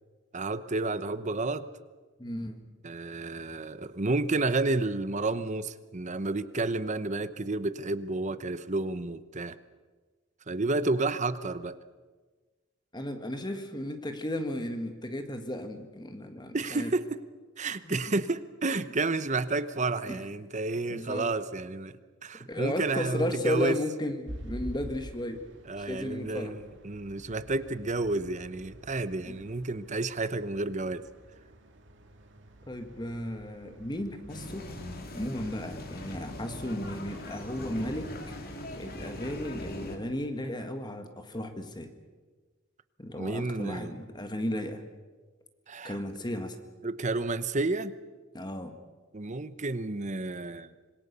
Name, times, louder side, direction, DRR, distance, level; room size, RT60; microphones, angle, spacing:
voice 1, 0.3-1.7 2.8-9.6 10.5-11.8 16.5-17.2 17.6-23.8 25.7-31.1 43.2-44.0 45.7-46.0 46.8-47.9 49.1-50.7, right 2 dB, 35° right, 13 dB, 0.9 m, -31 dB
voice 2, 2.2-2.7 12.9-17.0 17.8-18.1 20.1-20.2 20.9-21.3 22.5-25.5 25.8-26.6 29.2-29.4 32.7-34.7 35.1-38.2 38.4-41.9 43.0-44.8 45.8-46.6 48.3-48.8, left 1 dB, 20° left, 7 dB, 1.7 m, -34 dB
sound 1, 24.2-34.9, equal, 65° right, 2.5 m, -48 dB
sound 2, 34.3-40.0, left 1 dB, 50° left, 2.7 m, -40 dB
26.0 x 21.0 x 6.9 m, 1.3 s
head